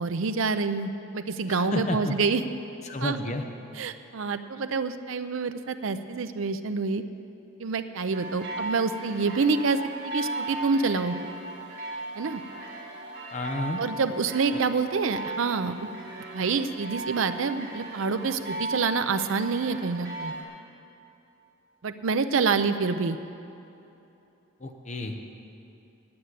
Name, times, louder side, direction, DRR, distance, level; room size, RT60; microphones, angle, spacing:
voice 1, 0.0-2.4 3.0-3.2 3.7-7.0 7.6-11.2 12.1-12.4 13.8-15.9 16.1-20.3 21.8-23.2, right 4 dB, 80° right, 10 dB, 0.6 m, -27 dB
voice 2, 1.5-2.2 2.9-3.4 13.3-13.8 24.6-25.2, left 1 dB, 35° left, 4 dB, 0.8 m, -31 dB
sound 1, 8.1-20.4, right 2 dB, 50° right, 2.1 m, -37 dB
8.8 x 8.7 x 9.4 m, 2.9 s
head